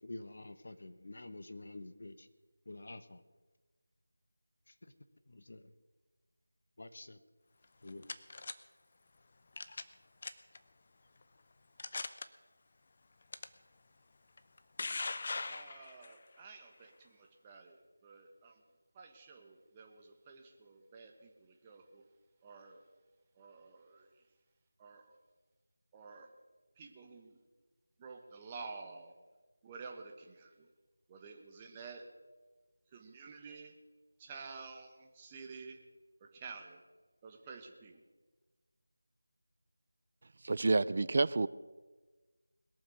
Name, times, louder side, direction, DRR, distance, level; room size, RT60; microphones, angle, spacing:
voice 1, 0.0-2.3 2.7-3.2 5.3-5.6 6.8-7.2 7.8-8.1, left 2 dB, 55° left, 1.0 m, -48 dB
sound 1, 7.6-8.5 9.6-9.9 10.2-10.6 11.2-11.3 11.8-12.3 13.3-13.5 14.4-16.1, left 3 dB, 40° left, 0.7 m, -40 dB
voice 2, 15.4-18.6 18.9-22.0 22.4-22.8 23.4-24.1 24.8-25.2 25.9-26.3 26.8-27.4 28.0-29.1 29.6-30.7 31.1-32.0 32.9-33.7 34.2-35.8 36.2-36.8 37.2-38.0, right 4 dB, 15° right, 1.2 m, -51 dB
voice 3, 40.4-41.5, right 3 dB, 40° right, 0.4 m, -29 dB
21.0 x 7.2 x 6.3 m
figure-of-eight pair, 170°, 0 cm